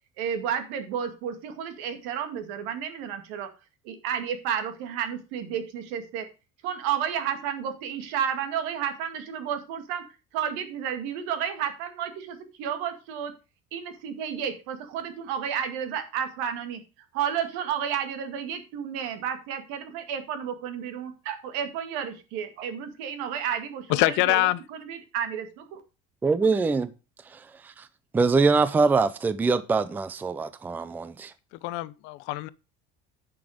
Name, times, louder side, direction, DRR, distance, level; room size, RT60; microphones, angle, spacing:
voice 1, 0.2-3.5 3.8-6.3 6.6-10.0 10.3-13.3 13.7-16.8 17.1-25.8, right 8 dB, 80° right, 2.2 m, -31 dB
voice 2, 23.9-24.6 31.6-32.5, left 18 dB, 65° left, 0.7 m, -24 dB
voice 3, 26.2-26.9 27.8-27.9 28.1-31.3, right 4 dB, 10° right, 0.4 m, -23 dB
10.5 x 6.1 x 5.0 m
cardioid pair, 170°, 21 cm